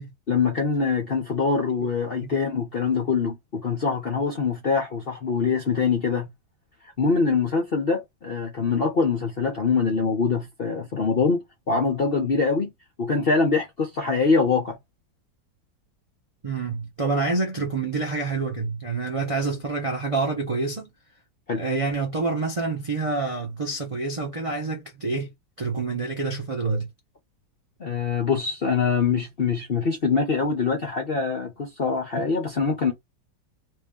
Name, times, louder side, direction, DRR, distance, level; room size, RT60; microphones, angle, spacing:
voice 1, 0.3-6.3 7.0-12.7 13.0-14.8 21.5-21.6 27.8-32.9, left 5 dB, 60° left, 0.6 m, -24 dB
voice 2, 16.4-20.9 21.5-25.3 25.6-26.9, right 3 dB, 50° right, 0.3 m, -27 dB
3.0 x 2.8 x 3.5 m
omnidirectional pair, 1.9 m